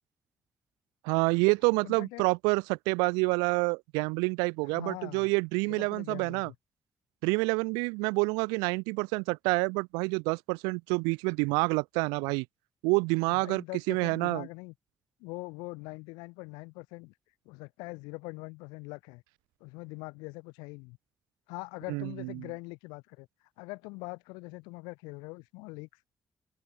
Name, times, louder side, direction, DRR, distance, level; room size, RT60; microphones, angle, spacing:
voice 1, 1.0-6.5 7.2-12.5 12.8-14.5 21.9-22.5, right 31 dB, 90° right, 0.8 m, -28 dB
voice 2, 1.8-2.3 4.6-5.3 5.7-6.6 13.3-14.7 15.2-17.1 17.5-19.2 19.6-21.0 21.5-23.3 23.6-25.9, left 28 dB, 90° left, 2.1 m, -43 dB
hypercardioid pair, 40°, 7 cm